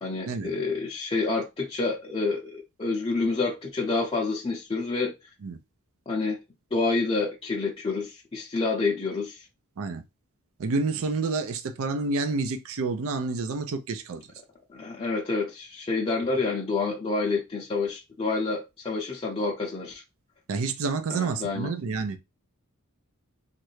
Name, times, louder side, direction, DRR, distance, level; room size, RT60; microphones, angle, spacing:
voice 1, 0.0-5.1 6.1-6.4 6.7-9.4 14.7-20.0 21.1-21.7, left 3 dB, 25° left, 0.5 m, -28 dB
voice 2, 10.6-14.3 20.5-22.2, right 3 dB, 65° right, 0.5 m, -29 dB
3.1 x 2.5 x 3.1 m
head